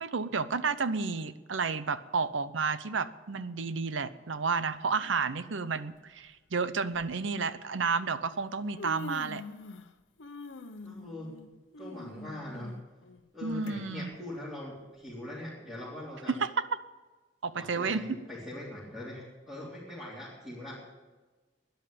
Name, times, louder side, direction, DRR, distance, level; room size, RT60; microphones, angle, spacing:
voice 1, 0.0-9.4 13.4-14.1 16.3-16.5 17.4-18.2, right 4 dB, 80° right, 14 dB, 0.7 m, -31 dB
Human voice, 5.0-5.2 6.2-6.3 6.9-7.1 8.1-8.2 8.5-9.9 10.2-13.7 14.1-14.2 15.1-15.2, left 2 dB, 80° left, 0.9 m, -44 dB
voice 2, 10.8-11.3 11.8-12.7 13.3-16.3 17.5-20.8, left 1 dB, ahead, -10 dB, 3.7 m, -42 dB
12.5 x 10.5 x 8.6 m, 1.3 s
head